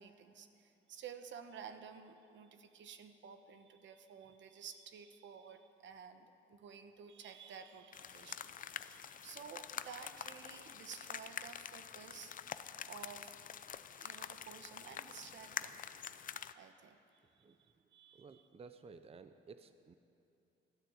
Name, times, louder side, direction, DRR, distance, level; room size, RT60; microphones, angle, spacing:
voice 1, 0.0-12.3 12.9-13.3 14.0-15.8 16.5-18.4, right 7 dB, 70° right, 8 dB, 1.0 m, -53 dB
sound 1, 7.9-16.5, left 8 dB, 45° left, 0.5 m, -47 dB
voice 2, 18.1-19.9, right 4 dB, 30° right, 10 dB, 0.6 m, -55 dB
13.5 x 10.0 x 7.8 m, 2.8 s
cardioid pair, 90°, 20 cm